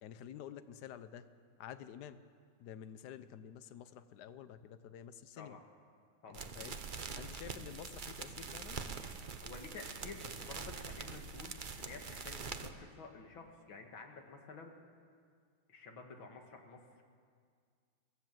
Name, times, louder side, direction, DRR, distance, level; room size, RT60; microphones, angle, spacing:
voice 1, 0.0-1.3 1.6-2.2 2.6-5.6 6.3-6.8 7.1-8.8, left 9 dB, 60° left, 12 dB, 1.3 m, -50 dB
sound 1, 6.3-12.7, right 5 dB, 45° right, 0.6 m, -44 dB
voice 2, 9.4-14.7 15.7-16.8, left 4 dB, 75° left, 3 dB, 2.7 m, -51 dB
23.0 x 16.5 x 7.6 m, 2.1 s
omnidirectional pair, 2.2 m